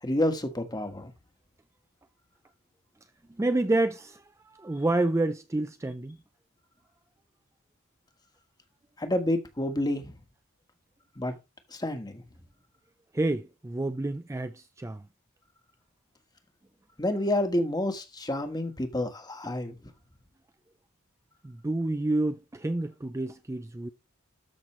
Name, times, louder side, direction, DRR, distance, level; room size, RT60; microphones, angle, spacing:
voice 1, 0.0-1.1 9.0-10.1 11.2-11.3 11.7-12.2 17.0-19.7, left 1 dB, 20° left, 1.4 m, -29 dB
voice 2, 3.4-6.2 13.1-15.0 21.4-23.9, right 2 dB, 15° right, 0.4 m, -29 dB
13.0 x 6.0 x 3.1 m
head